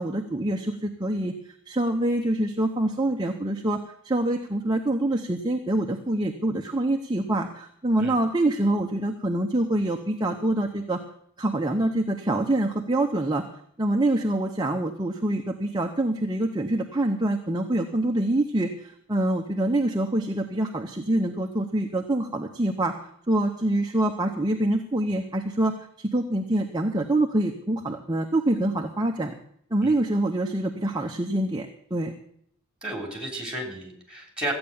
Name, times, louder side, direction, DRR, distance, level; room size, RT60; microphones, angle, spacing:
voice 1, 0.0-11.0 11.4-13.4 13.8-22.9 23.3-29.3 29.7-32.1, right 1 dB, 20° right, 3 dB, 0.8 m, -25 dB
voice 2, 32.8-34.5, right 1 dB, 5° right, 1 dB, 3.3 m, -33 dB
14.5 x 8.8 x 7.1 m, 0.66 s
head